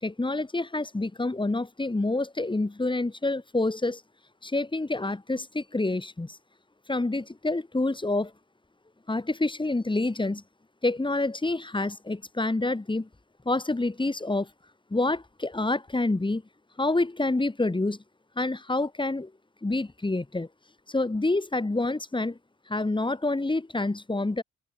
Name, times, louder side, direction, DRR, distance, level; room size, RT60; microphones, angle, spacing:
voice 1, 0.0-4.0 4.4-6.4 6.9-8.3 9.1-10.4 10.8-13.1 13.5-14.5 14.9-16.4 16.8-18.0 18.4-19.3 19.6-20.5 20.9-22.4 22.7-24.4, left 2 dB, 15° left, 6.9 m, -27 dB
cardioid pair, 90°, 30 cm